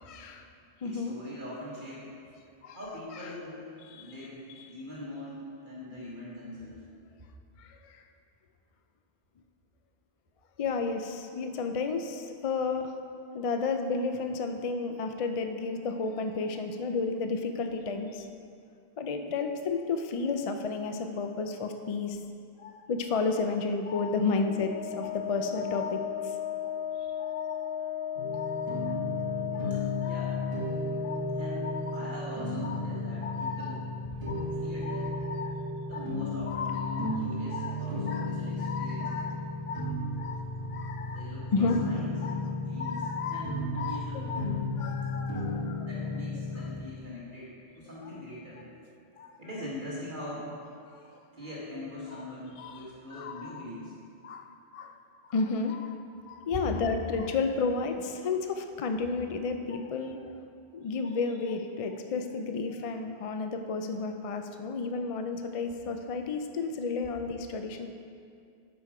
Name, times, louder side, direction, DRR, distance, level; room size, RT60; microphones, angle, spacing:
voice 1, 0.1-0.5 0.8-1.2 2.6-2.8 3.9-4.1 4.6-4.7 7.6-8.0 10.6-12.9 13.3-18.3 19.0-22.2 22.6-26.4 27.2-27.7 28.3-29.0 29.5-30.5 31.0-31.3 31.6-32.1 32.6-32.8 33.2-33.8 34.3-34.5 34.8-35.6 35.9-36.1 36.5-37.2 37.5-37.8 38.1-39.3 39.7-41.2 41.5-41.8 42.2-42.4 42.8-43.5 43.8-44.5 44.8-45.9 49.2-49.3 50.9-51.0 52.1-52.2 52.6-52.8 53.1-53.5 54.2-54.5 54.7-54.9 55.2-55.9 56.3-60.2 60.7-67.9, left 4 dB, 55° left, 6 dB, 0.4 m, -32 dB
voice 2, 0.8-2.1 2.8-6.8 29.7-29.8 30.1-30.4 31.3-33.8 34.1-35.2 35.9-39.2 41.0-42.1 42.7-44.6 45.8-48.7 49.4-50.5 51.3-53.9, left 1 dB, 50° right, -7 dB, 1.8 m, -42 dB
Wind instrument woodwind instrument, 24.3-32.2, left 10 dB, 70° left, 0.8 m, -36 dB
sound 1, 28.1-46.7, left 2 dB, 70° right, 2.0 m, -34 dB
11.5 x 5.1 x 4.8 m, 2.4 s
omnidirectional pair, 1.1 m